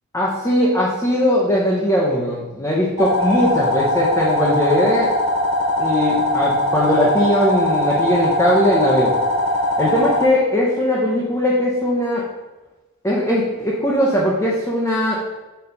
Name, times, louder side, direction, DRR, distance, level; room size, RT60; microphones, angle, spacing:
voice 1, 0.1-5.1 5.8-9.1 9.8-12.3 13.0-15.2, equal, 15° left, -5 dB, 0.7 m, -19 dB
sound 1, 3.0-10.3, left 1 dB, 25° right, 0.8 m, -20 dB
4.5 x 3.9 x 5.3 m, 1.1 s
head